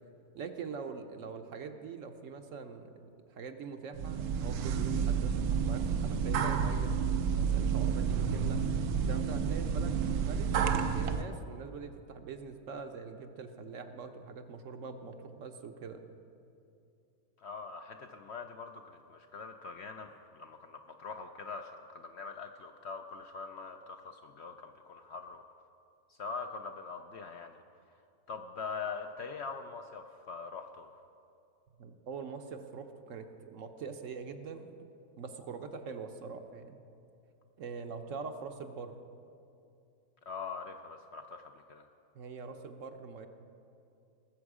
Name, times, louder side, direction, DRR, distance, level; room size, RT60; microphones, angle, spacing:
voice 1, 0.3-7.0 7.3-8.6 9.1-16.0 31.8-34.7 35.2-36.8 37.6-38.9 42.1-43.3, right 5 dB, 65° right, 7 dB, 1.0 m, -43 dB
sound 1, 3.9-11.2, right 6 dB, 85° right, 1.2 m, -30 dB
voice 2, 17.4-25.4 26.1-27.6 28.3-30.9 40.3-41.8, left 5 dB, 65° left, 5 dB, 0.7 m, -43 dB
19.5 x 7.1 x 4.8 m, 2.5 s
omnidirectional pair, 1.6 m